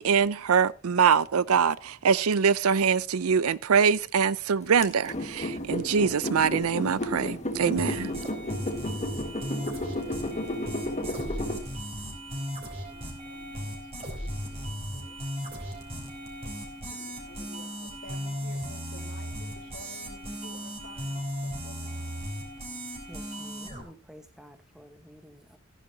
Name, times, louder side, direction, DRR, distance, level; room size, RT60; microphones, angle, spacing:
voice 1, 0.0-8.1, right 6 dB, 85° right, 0.5 m, -24 dB
sound 1, 4.8-11.6, left 1 dB, 35° left, 1.7 m, -33 dB
sound 2, 7.8-23.8, equal, 30° right, 3.9 m, -36 dB
voice 2, 11.9-13.8 14.2-15.2 16.8-22.1, left 2 dB, 60° left, 2.7 m, -51 dB
voice 3, 23.1-25.6, equal, 5° right, 1.2 m, -50 dB
15.0 x 10.0 x 2.8 m
head